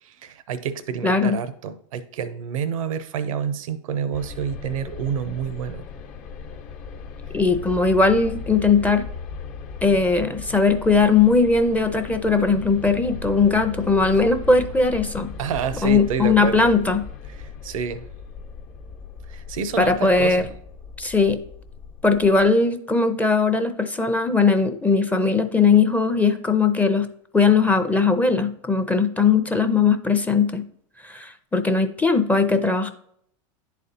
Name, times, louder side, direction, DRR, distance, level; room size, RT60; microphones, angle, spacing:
voice 1, 0.0-5.8 15.4-16.7 17.4-18.0 19.3-20.5, right 7 dB, 85° right, 13 dB, 0.6 m, -28 dB
voice 2, 1.0-1.4 7.3-9.1 9.8-15.3 15.8-17.0 19.8-20.4 21.0-21.4 22.0-27.1 27.3-30.6 31.0-32.9, left 4 dB, 10° left, 8 dB, 0.5 m, -19 dB
sound 1, 4.1-22.5, left 5 dB, 50° left, 1.0 m, -37 dB
10.5 x 4.2 x 2.7 m, 0.68 s
hypercardioid pair, 115°, 17 cm